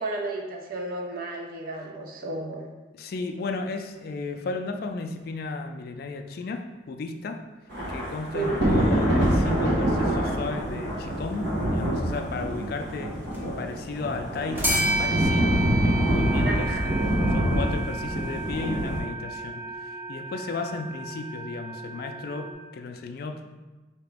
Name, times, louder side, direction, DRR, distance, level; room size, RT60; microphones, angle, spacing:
voice 1, 0.0-2.7 8.3-8.9 16.4-16.9, right 2 dB, 50° right, 1 dB, 0.6 m, -33 dB
voice 2, 2.9-7.4 7.9-16.8 17.3-23.6, left 3 dB, 55° left, 6 dB, 0.3 m, -34 dB
Thunder / Rain, 7.7-19.0, right 1 dB, 75° right, 1.3 m, -26 dB
sound 1, 13.3-13.4 14.5-22.5, right 2 dB, 10° right, 0.6 m, -32 dB
4.8 x 2.9 x 3.4 m, 1.2 s
head